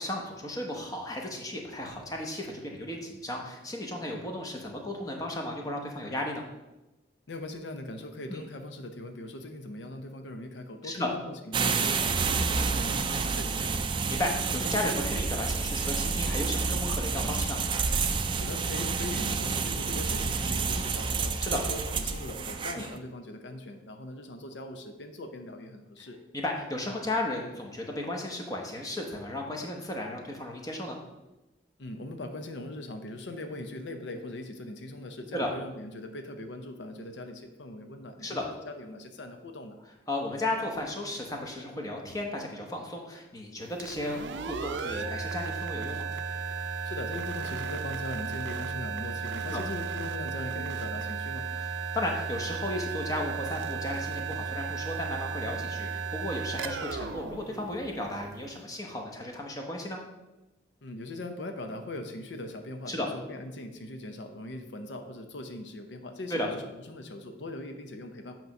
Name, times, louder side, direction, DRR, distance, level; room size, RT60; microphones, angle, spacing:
voice 1, 0.0-6.4 8.3-8.4 10.8-11.1 14.1-17.6 21.4-21.6 22.8-22.9 26.3-31.0 35.3-35.5 38.2-38.5 40.1-46.1 49.5-49.6 51.5-60.0 62.9-63.1 66.3-66.5, left 1 dB, 20° left, 1 dB, 0.9 m, -34 dB
voice 2, 7.3-13.8 18.4-26.2 31.8-38.4 38.7-39.8 46.8-51.5 60.8-68.3, left 1 dB, 90° left, 6 dB, 0.6 m, -40 dB
sound 1, 11.5-23.0, right 5 dB, 30° right, 0.3 m, -29 dB
sound 2, 43.7-58.3, right 5 dB, 85° right, 0.5 m, -35 dB
8.0 x 3.0 x 5.3 m, 1.0 s
head